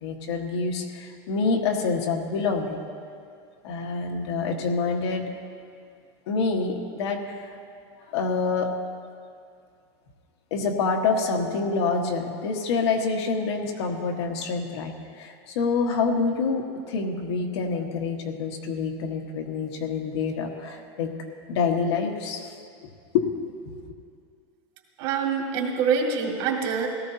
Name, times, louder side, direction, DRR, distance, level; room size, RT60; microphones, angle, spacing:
voice 1, 0.0-2.8 3.6-5.3 6.3-7.5 8.1-8.7 10.5-21.1 21.5-22.5 22.8-23.3, left 4 dB, 80° left, 1 dB, 1.5 m, -27 dB
voice 2, 25.0-26.9, right 6 dB, 55° right, -1 dB, 2.2 m, -25 dB
17.5 x 13.5 x 2.8 m, 2.3 s
supercardioid pair, 155°, 14 cm